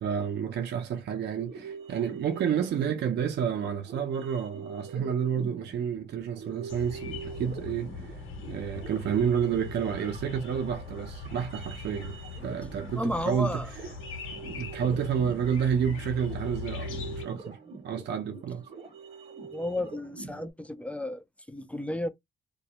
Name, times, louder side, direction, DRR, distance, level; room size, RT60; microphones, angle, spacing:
voice 1, 0.0-8.2 8.5-13.6 14.3-17.6 17.8-18.7, right 8 dB, 60° right, 0.5 m, -30 dB
sound 1, 1.2-20.5, right 4 dB, 35° right, 0.8 m, -45 dB
sound 2, 6.7-17.2, left 4 dB, 85° left, 0.9 m, -40 dB
voice 2, 13.0-13.7 19.5-22.1, left 1 dB, 5° left, 0.3 m, -33 dB
2.2 x 2.0 x 2.7 m
cardioid pair, 90°, 20 cm